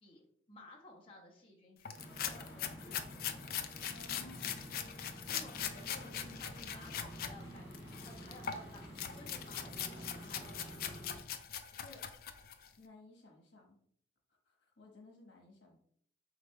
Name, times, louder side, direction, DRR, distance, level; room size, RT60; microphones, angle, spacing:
voice 1, 0.0-3.4 5.2-10.9, left 2 dB, 30° left, -3 dB, 0.8 m, -56 dB
sound 1, 1.8-7.3 7.7-12.7, left 8 dB, 50° left, 0.3 m, -41 dB
sound 2, 1.9-11.2, equal, 15° right, 1.4 m, -50 dB
voice 2, 3.9-4.7 5.9-7.0 9.5-9.8 11.8-12.1 12.8-13.8 14.3-15.8, left 2 dB, 85° left, 1 dB, 1.1 m, -58 dB
4.8 x 4.0 x 2.2 m, 0.65 s
head